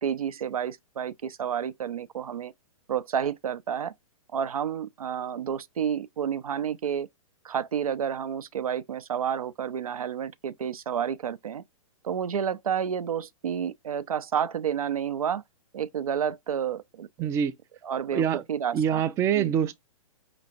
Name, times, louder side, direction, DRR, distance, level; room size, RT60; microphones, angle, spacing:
voice 1, 0.0-2.5 2.9-3.9 4.3-7.1 7.4-11.6 12.0-15.4 15.7-17.1 17.8-19.0 19.3-19.5, right 8 dB, 80° right, 0.5 m, -30 dB
voice 2, 17.2-17.5 18.1-18.4 18.7-19.7, right 8 dB, 15° right, 0.3 m, -25 dB
5.1 x 3.0 x 2.8 m
hypercardioid pair, 120°, 18 cm